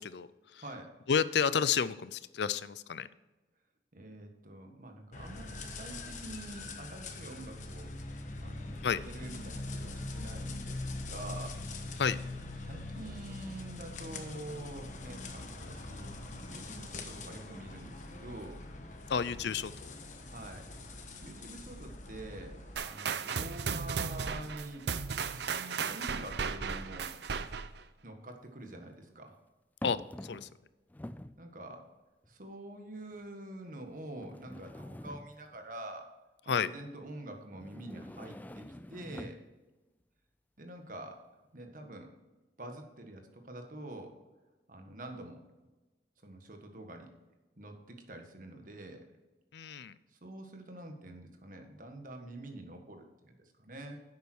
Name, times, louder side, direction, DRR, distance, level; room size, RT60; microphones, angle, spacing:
voice 1, 0.0-0.6 1.1-3.1 8.8-9.0 12.0-12.2 19.1-19.9 29.8-30.5 36.5-36.7 49.5-49.9, left 6 dB, 75° left, 16 dB, 0.5 m, -31 dB
voice 2, 0.6-0.9 3.9-7.9 8.4-11.6 12.6-16.2 16.5-18.6 20.3-20.7 21.2-24.9 25.3-27.1 28.0-29.3 31.4-31.9 32.3-36.1 36.4-39.4 40.6-41.2 41.5-42.1 42.6-44.1 44.7-45.4 46.2-47.1 47.6-49.0 50.1-54.0, right 1 dB, 50° right, 4 dB, 1.6 m, -46 dB
sound 1, 5.1-22.8, left 2 dB, 45° left, 1.2 m, -43 dB
sound 2, 22.8-27.8, right 6 dB, 75° right, 0.6 m, -35 dB
sound 3, 26.8-26.9 28.3-29.0 29.8-30.6 30.9-31.4 32.2-32.3 33.1-33.2 34.2-35.6 37.5-39.5, left 1 dB, 10° left, 0.3 m, -46 dB
11.0 x 8.4 x 4.5 m, 1.1 s
head